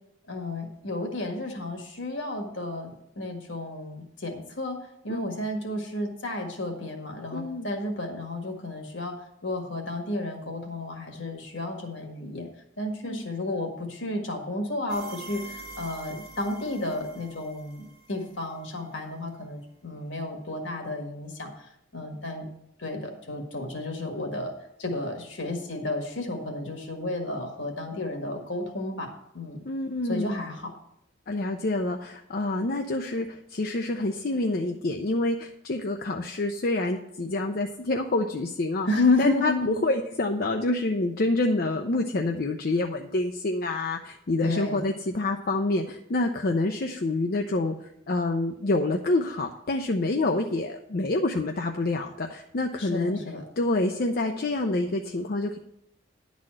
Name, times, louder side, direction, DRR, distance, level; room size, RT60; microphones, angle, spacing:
voice 1, 0.3-9.2 9.4-12.5 12.8-22.5 22.8-24.5 24.8-29.6 30.1-30.7 38.8-39.8 44.4-44.8 52.8-53.4, left 2 dB, 70° left, 3 dB, 1.8 m, -32 dB
voice 2, 7.3-7.7 13.0-13.3 29.7-30.4 31.3-38.9 39.2-53.2 53.6-55.6, left 2 dB, 50° left, 4 dB, 0.6 m, -27 dB
sound 1, 14.9-18.6, right 3 dB, 50° right, 1.2 m, -44 dB
11.0 x 4.1 x 7.5 m, 0.79 s
head